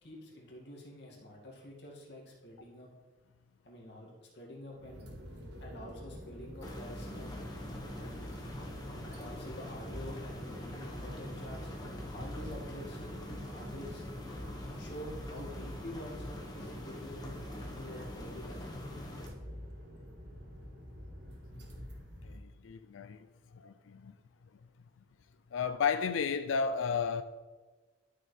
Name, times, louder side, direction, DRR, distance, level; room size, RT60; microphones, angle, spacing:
voice 1, 0.0-2.9 3.6-5.1 5.6-7.4 8.0-8.4 9.1-13.1 13.5-14.1 14.8-18.9, equal, 60° left, 2.2 m, -48 dB
sound 1, 4.7-22.4, equal, 65° right, 1.5 m, -46 dB
sound 2, 6.6-19.3, left 1 dB, 20° left, 1.2 m, -44 dB
voice 2, 22.2-23.3 23.5-24.1 25.5-27.2, left 6 dB, 85° left, 0.4 m, -33 dB
12.0 x 6.7 x 3.3 m
head